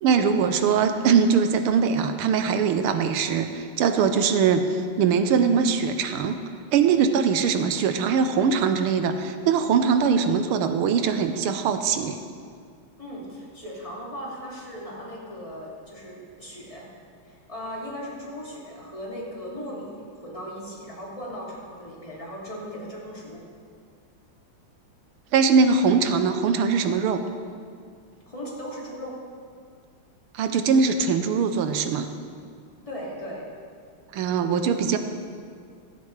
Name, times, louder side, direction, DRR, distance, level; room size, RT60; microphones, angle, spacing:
voice 1, 0.0-6.4 6.7-12.2 25.3-27.2 30.3-32.1 34.1-35.0, right 6 dB, 85° right, 8 dB, 1.6 m, -22 dB
voice 2, 13.0-16.9 17.2-23.4 28.3-29.1 32.9-33.4, equal, 15° left, -5 dB, 2.6 m, -37 dB
16.5 x 12.0 x 3.3 m, 2.1 s
omnidirectional pair, 2.4 m